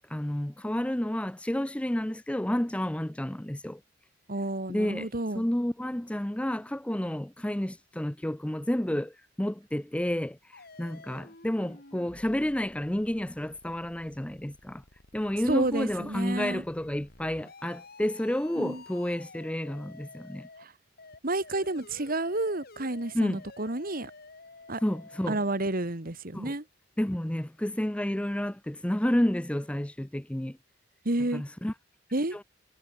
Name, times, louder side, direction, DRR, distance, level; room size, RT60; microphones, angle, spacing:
voice 1, 0.1-3.8 4.7-5.1 5.4-14.8 15.1-20.5 23.1-23.4 24.8-25.4 26.3-26.5 27.0-30.6 31.3-31.7, left 1 dB, 5° left, 0.5 m, -30 dB
voice 2, 4.3-5.4 15.5-16.6 18.6-18.8 20.6-20.7 21.2-24.1 24.7-24.8 25.3-26.6 31.0-31.4 32.1-32.4, right 2 dB, 50° right, 2.1 m, -30 dB
sound 1, 10.5-20.7 21.0-25.7, left 3 dB, 50° left, 4.8 m, -52 dB
head